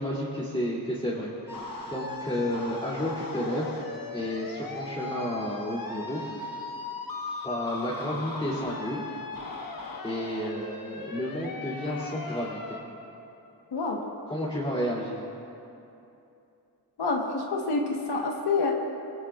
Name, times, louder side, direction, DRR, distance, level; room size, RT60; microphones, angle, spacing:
voice 1, 0.0-1.6 1.9-3.7 4.1-6.2 7.4-9.0 10.0-12.8 14.3-15.3, equal, 10° left, -7 dB, 3.0 m, -31 dB
sound 1, 1.5-12.8, left 3 dB, 60° left, 1.5 m, -38 dB
voice 2, 13.7-14.0 17.0-18.7, left 3 dB, 85° left, 0 dB, 1.4 m, -27 dB
21.0 x 17.5 x 2.5 m, 2.8 s
cardioid pair, 60°, 39 cm